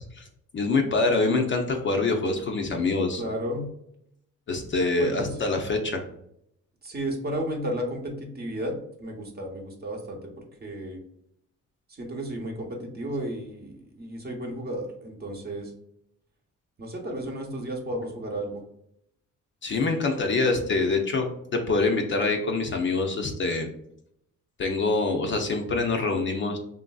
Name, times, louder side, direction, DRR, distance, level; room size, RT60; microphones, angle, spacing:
voice 1, 0.5-3.2 4.5-6.0 19.6-23.7 24.6-26.6, left 3 dB, 40° left, 3 dB, 0.5 m, -25 dB
voice 2, 3.2-3.7 5.0-5.4 6.8-10.3 10.6-11.0 11.9-15.7 16.8-18.6, right 1 dB, 30° right, 1 dB, 0.8 m, -33 dB
3.1 x 2.5 x 2.3 m, 0.75 s
cardioid pair, 90°, 30 cm